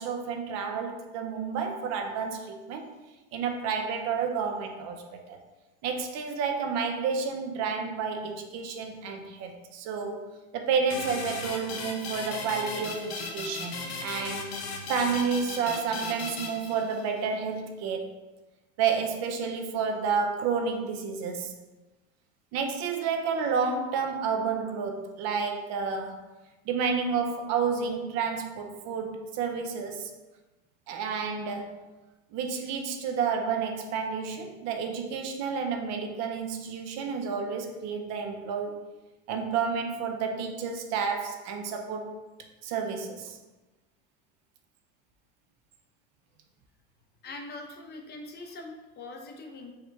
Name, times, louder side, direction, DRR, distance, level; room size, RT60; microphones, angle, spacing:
voice 1, 0.0-2.9 3.3-5.0 5.3-5.4 5.8-10.2 10.5-14.5 14.9-18.2 18.8-21.6 22.5-26.2 26.7-30.1 30.9-31.8 32.3-38.7 39.3-42.1 42.6-43.4, right 5 dB, 55° right, 4 dB, 0.7 m, -30 dB
sound 1, 10.9-17.3, left 4 dB, 80° left, 0.8 m, -37 dB
voice 2, 47.2-49.7, left 2 dB, 30° left, 2 dB, 0.7 m, -42 dB
4.9 x 2.2 x 4.5 m, 1.1 s
supercardioid pair, 105°, 31 cm